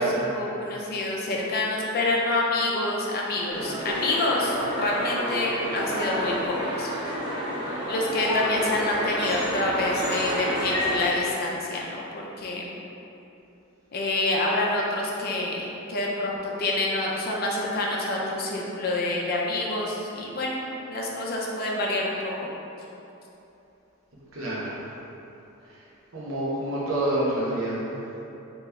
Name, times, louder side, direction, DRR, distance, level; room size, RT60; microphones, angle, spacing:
voice 1, 0.3-6.9 7.9-12.0 12.4-12.6 13.9-22.5, left 2 dB, 45° left, -3 dB, 0.5 m, -27 dB
sound 1, 3.5-11.1, equal, 25° right, 0.9 m, -29 dB
voice 2, 24.3-24.8 26.1-28.0, right 1 dB, 80° right, -7 dB, 0.8 m, -27 dB
3.2 x 2.9 x 3.5 m, 2.9 s
head